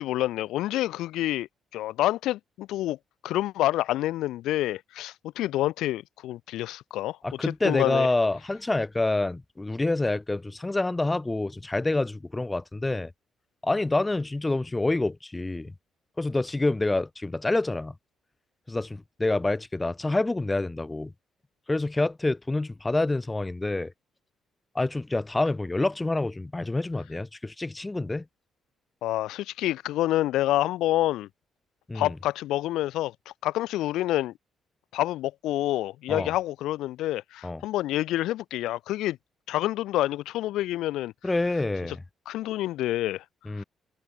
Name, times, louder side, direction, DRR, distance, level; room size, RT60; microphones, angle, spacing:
voice 1, 0.0-1.5 1.7-3.0 3.2-8.1 29.0-31.3 31.9-34.3 34.9-39.2 39.5-41.1 42.3-43.2 43.6-43.7, left 15 dB, 90° left, 1.2 m, -28 dB
voice 2, 7.2-13.1 13.6-15.7 16.2-17.9 18.7-21.1 21.7-23.9 24.7-28.2 31.9-32.1 36.1-36.3 37.4-37.6 41.2-42.0 43.5-43.6, left 2 dB, 15° left, 1.0 m, -27 dB
cardioid pair, 90°, 0 cm